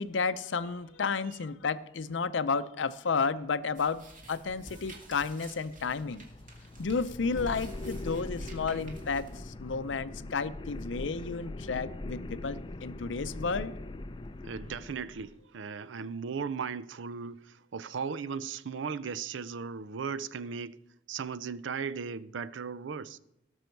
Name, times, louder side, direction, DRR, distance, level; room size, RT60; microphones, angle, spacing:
voice 1, 0.0-6.2 6.8-13.7, left 4 dB, 80° left, 0.6 m, -32 dB
sound 1, 3.7-9.4, right 1 dB, 45° right, 2.0 m, -49 dB
sound 2, 5.8-15.4, left 2 dB, 25° left, 0.4 m, -42 dB
voice 2, 14.4-20.8 21.1-23.2, right 6 dB, 80° right, 0.5 m, -37 dB
18.0 x 6.3 x 4.5 m
head